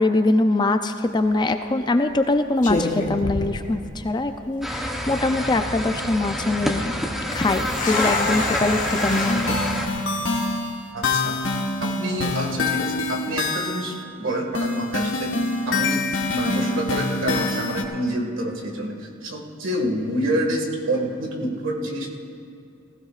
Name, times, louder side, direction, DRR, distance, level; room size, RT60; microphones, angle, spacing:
voice 1, 0.0-6.9 7.3-9.4, left 2 dB, 20° left, 8 dB, 0.4 m, -23 dB
sound 1, 1.1-1.4 2.1-2.3 2.6-4.2 4.5-4.6 5.2-5.6 7.3-9.3, left 2 dB, 40° left, 1.4 m, -27 dB
sound 2, 4.6-9.9, equal, ahead, 0.8 m, -27 dB
sound 3, 9.0-14.0 14.5-17.8, left 3 dB, 65° left, 1.3 m, -25 dB
voice 2, 10.9-11.4 11.8-13.9 14.2-15.4 15.7-16.1 16.3-22.1, right 1 dB, 75° right, 1 dB, 1.9 m, -27 dB
19.0 x 15.5 x 2.5 m, 2.6 s
head